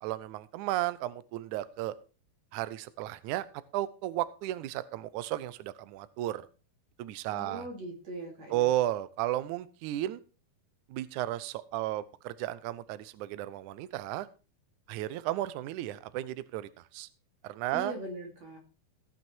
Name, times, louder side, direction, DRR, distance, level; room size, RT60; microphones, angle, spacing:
voice 1, 0.0-1.9 2.5-3.5 3.7-6.5 7.0-7.7 8.5-10.2 10.9-14.3 14.9-17.1 17.4-17.9, right 14 dB, 80° right, 15 dB, 1.8 m, -34 dB
voice 2, 7.3-8.7 17.7-18.6, right 1 dB, 45° right, 1 dB, 3.7 m, -40 dB
17.0 x 6.1 x 4.6 m, 0.33 s
omnidirectional pair, 4.3 m